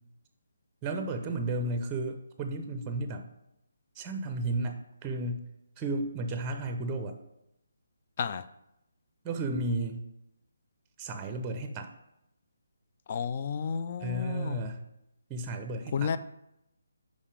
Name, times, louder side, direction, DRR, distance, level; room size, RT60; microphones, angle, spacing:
voice 1, 0.8-3.3 3.9-5.5 5.8-7.2 9.2-10.0 11.0-11.9 14.0-14.8 15.3-16.1, right 2 dB, 15° right, 7 dB, 0.5 m, -33 dB
voice 2, 13.1-14.7 15.9-16.2, left 6 dB, 40° left, 13 dB, 0.3 m, -32 dB
5.5 x 5.1 x 5.0 m, 0.84 s
figure-of-eight pair, 145°, 0 cm